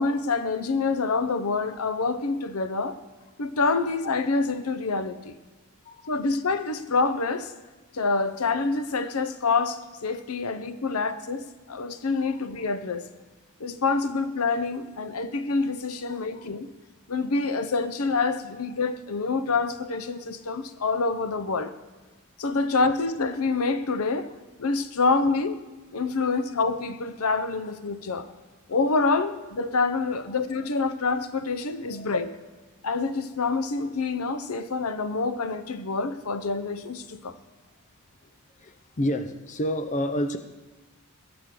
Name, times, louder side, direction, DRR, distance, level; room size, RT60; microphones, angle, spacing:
voice 1, 0.0-3.0 3.4-5.4 6.1-7.5 7.9-13.0 13.6-16.7 17.1-21.7 22.4-24.3 24.6-25.6 25.9-28.3 28.7-32.3 32.8-37.4, left 4 dB, 75° left, 0.8 m, -26 dB
voice 2, 16.1-16.5 28.2-28.3 31.9-32.1 38.6-40.4, equal, 35° left, 0.6 m, -30 dB
20.5 x 8.5 x 3.8 m
head